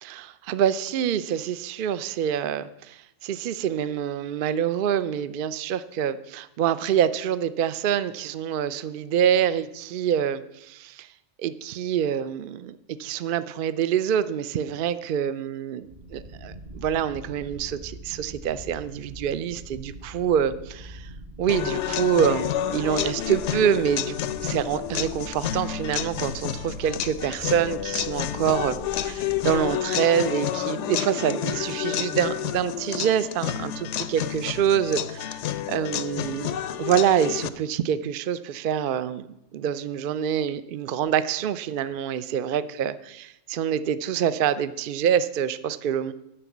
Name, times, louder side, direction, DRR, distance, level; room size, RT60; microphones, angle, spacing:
voice 1, 0.0-11.1 11.4-21.1 21.4-24.2 24.4-35.4 35.7-39.3 39.5-46.1, right 9 dB, 60° right, 14 dB, 0.6 m, -26 dB
sound 1, 15.8-29.8, right 1 dB, 40° right, 1.0 m, -43 dB
sound 2, 21.5-37.5, left 11 dB, 80° left, 0.9 m, -30 dB
11.0 x 5.9 x 8.4 m, 0.87 s
omnidirectional pair, 1.2 m